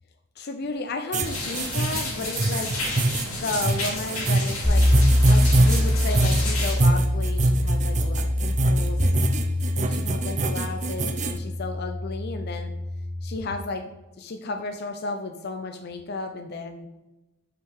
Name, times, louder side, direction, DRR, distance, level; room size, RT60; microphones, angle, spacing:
voice 1, 0.4-2.7 3.3-4.9 5.2-9.2 9.7-12.7 13.2-13.9 14.2-16.9, left 3 dB, 50° left, 5 dB, 0.5 m, -33 dB
sound 1, 1.1-11.4, right 2 dB, 35° right, 0.5 m, -24 dB
sound 2, 1.2-6.8, left 2 dB, 85° left, 2.6 m, -32 dB
sound 3, 4.6-13.4, left 1 dB, 10° right, 2.0 m, -24 dB
5.9 x 5.6 x 4.7 m, 1.0 s
head